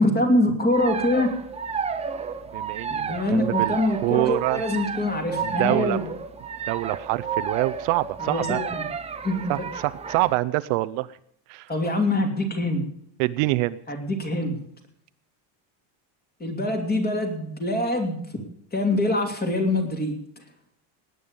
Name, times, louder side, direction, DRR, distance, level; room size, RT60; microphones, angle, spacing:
voice 1, 0.0-1.3 2.9-6.1 8.2-8.8 9.2-9.6 11.7-12.8 13.9-14.6 16.4-18.2 18.7-20.1, left 1 dB, 20° left, 3 dB, 2.8 m, -24 dB
sound 1, 0.7-10.3, right 6 dB, 15° right, 0.7 m, -31 dB
voice 2, 2.5-3.8 4.0-4.6 5.4-6.0 6.7-8.6 9.5-11.1 11.5-11.7 13.2-13.8, right 19 dB, 70° right, 12 dB, 0.8 m, -25 dB
19.0 x 9.3 x 5.3 m, 0.68 s
cardioid pair, 155°, 49 cm